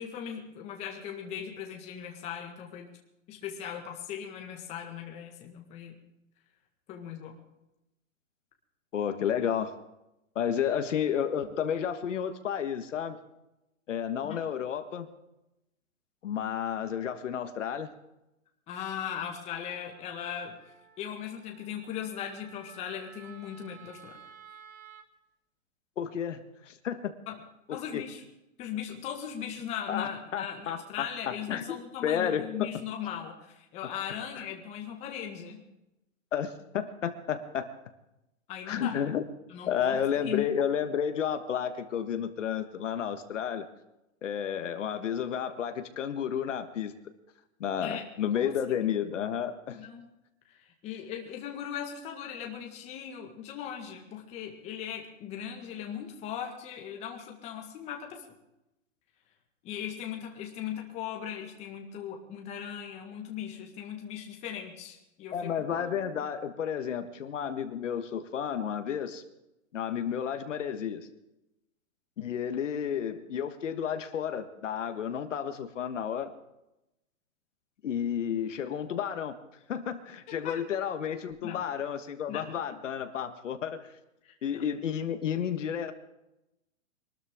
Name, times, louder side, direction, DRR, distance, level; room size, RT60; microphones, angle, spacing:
voice 1, 0.0-2.9 3.3-6.0 6.9-7.4 14.2-14.4 18.7-20.5 21.0-24.2 27.3-27.4 27.7-28.2 28.6-35.6 38.5-39.0 39.5-40.5 47.8-48.0 48.3-48.5 49.7-50.1 50.5-58.2 59.6-65.5 65.7-66.2 80.3-80.6 81.4-81.6 82.3-82.4 82.7-82.8 84.2-84.6, left 9 dB, 15° left, 2 dB, 1.6 m, -39 dB
voice 2, 8.9-9.7 10.3-13.2 13.9-15.1 16.2-17.9 26.0-27.1 27.7-28.0 29.9-31.1 31.5-31.7 32.0-32.5 34.1-34.4 36.3-37.7 38.7-39.3 39.7-43.7 44.2-46.9 47.6-49.8 65.3-69.2 69.7-71.1 72.2-76.3 77.8-79.3 79.7-83.8 84.4-85.9, left 8 dB, 65° left, 8 dB, 1.5 m, -31 dB
Wind instrument woodwind instrument, 19.9-25.1, right 6 dB, 90° right, 1.8 m, -53 dB
24.0 x 13.0 x 3.7 m, 0.90 s
hypercardioid pair, 165°, 40 cm